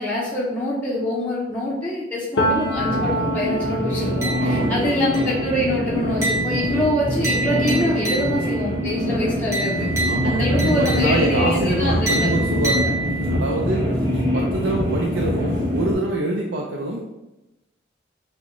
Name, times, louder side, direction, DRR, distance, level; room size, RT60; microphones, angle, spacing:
voice 1, 0.0-9.9 10.2-12.5 13.9-14.2, left 1 dB, 10° left, -7 dB, 0.5 m, -25 dB
Piano, 2.4-10.0 10.3-11.9, equal, 65° left, 0.5 m, -31 dB
sound 1, 2.7-15.9, equal, 55° right, 1.2 m, -24 dB
sound 2, 4.2-4.8 5.1-5.6 6.2-8.6 9.5-11.4 12.1-13.5, right 2 dB, 15° right, 1.0 m, -28 dB
voice 2, 4.4-4.8 10.1-13.0 13.3-17.0, right 1 dB, 85° right, -1 dB, 0.5 m, -25 dB
6.0 x 2.1 x 3.0 m, 0.97 s
head